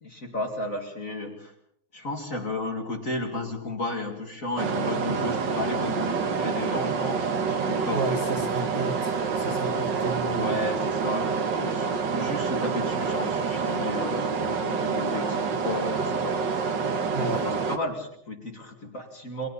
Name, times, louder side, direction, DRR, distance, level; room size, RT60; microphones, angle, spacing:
voice 1, 0.0-1.5 1.9-8.6 10.4-16.4 17.2-19.5, left 2 dB, 35° left, 3 dB, 2.7 m, -33 dB
sound 1, 4.6-17.8, right 5 dB, 55° right, 2.0 m, -27 dB
voice 2, 7.9-10.7 17.1-17.4, right 3 dB, 35° right, 5 dB, 1.4 m, -31 dB
28.5 x 22.0 x 4.2 m, 0.72 s
omnidirectional pair, 2.4 m